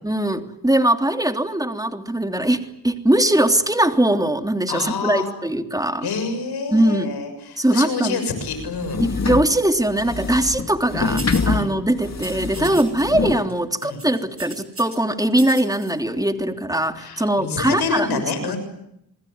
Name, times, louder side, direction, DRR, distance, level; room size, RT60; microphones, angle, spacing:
voice 1, 0.0-6.1 6.7-7.1 7.6-8.2 9.0-18.2, right 1 dB, 10° right, 7 dB, 3.2 m, -21 dB
voice 2, 4.7-5.3 6.0-9.0 11.0-11.2 11.5-11.7 12.5-12.7 13.8-14.0 17.0-18.6, left 4 dB, 80° left, 8 dB, 6.8 m, -27 dB
sound 1, 8.4-13.5, left 4 dB, 45° left, 2.4 m, -26 dB
sound 2, 11.2-11.5 12.2-13.0 13.3-13.5 13.8-15.0 15.3-15.9, right 3 dB, 35° right, 8.0 m, -37 dB
27.5 x 21.0 x 9.6 m, 0.77 s
supercardioid pair, 45°, 38 cm